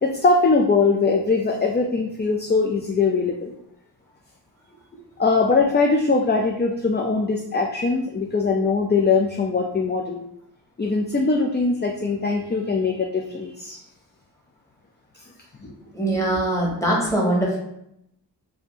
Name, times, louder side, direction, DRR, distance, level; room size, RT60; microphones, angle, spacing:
voice 1, 0.0-3.5 5.2-10.3 10.8-13.8, left 4 dB, 25° left, 2 dB, 0.4 m, -21 dB
voice 2, 15.9-17.6, right 1 dB, 5° left, -4 dB, 1.3 m, -22 dB
2.7 x 2.7 x 3.8 m, 0.78 s
wide cardioid pair, 40°, 43 cm